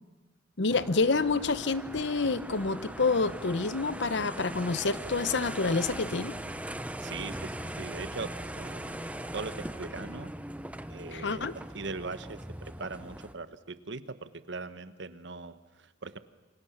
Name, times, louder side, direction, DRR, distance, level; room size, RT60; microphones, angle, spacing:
voice 1, 0.6-6.4 11.1-11.5, left 4 dB, 65° left, 15 dB, 0.9 m, -28 dB
sound 1, 0.7-13.3, right 1 dB, 5° right, 0.8 m, -40 dB
sound 2, 2.8-9.8, equal, 85° right, 6.1 m, -51 dB
voice 2, 7.0-10.3 10.9-11.4 11.7-16.2, right 3 dB, 65° right, 12 dB, 1.2 m, -40 dB
27.5 x 25.5 x 7.1 m, 1.2 s
head